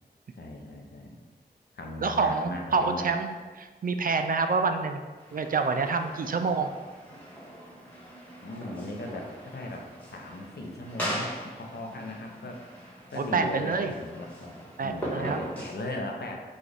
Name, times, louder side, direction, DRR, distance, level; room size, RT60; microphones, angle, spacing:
voice 1, 0.4-1.2 1.7-3.0 8.4-11.3 11.6-12.6 13.1-14.6 14.8-16.4, left 2 dB, 75° left, 1 dB, 0.7 m, -38 dB
voice 2, 2.0-3.3 3.5-5.0 5.3-6.7 13.1-13.9 14.8-15.5, right 4 dB, 55° right, 7 dB, 0.4 m, -27 dB
sound 1, 5.2-15.7, equal, 10° left, 1.4 m, -40 dB
6.2 x 2.4 x 3.3 m, 1.3 s
wide cardioid pair, 85°, 17 cm